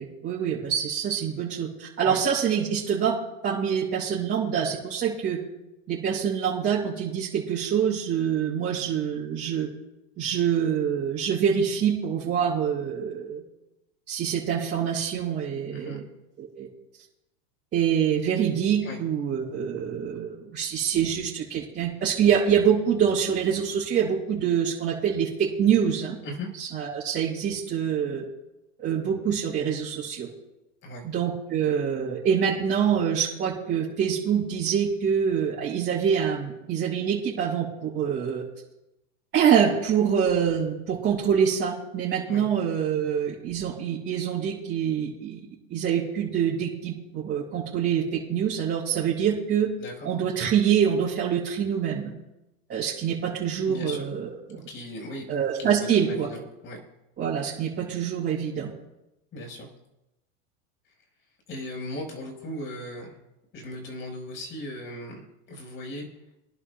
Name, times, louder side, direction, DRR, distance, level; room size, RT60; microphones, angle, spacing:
voice 1, 0.0-3.2 3.4-5.4 5.9-9.7 10.2-13.4 14.1-16.0 16.4-16.7 17.7-26.1 26.6-28.2 28.8-30.3 31.0-38.4 39.3-45.4 45.7-48.0 48.3-49.7 50.0-52.1 52.7-54.3 55.3-56.3 57.2-58.7, right 8 dB, 30° right, -8 dB, 6.0 m, -25 dB
voice 2, 15.7-16.0 18.8-19.0 26.2-26.5 30.8-31.1 42.3-42.5 49.8-50.2 53.7-54.1 54.5-55.3 55.6-56.8 59.3-59.7 61.5-63.2 63.5-65.2 65.5-66.1, left 1 dB, 30° left, 1 dB, 5.6 m, -37 dB
28.5 x 11.0 x 2.4 m, 0.92 s
supercardioid pair, 140°, 39 cm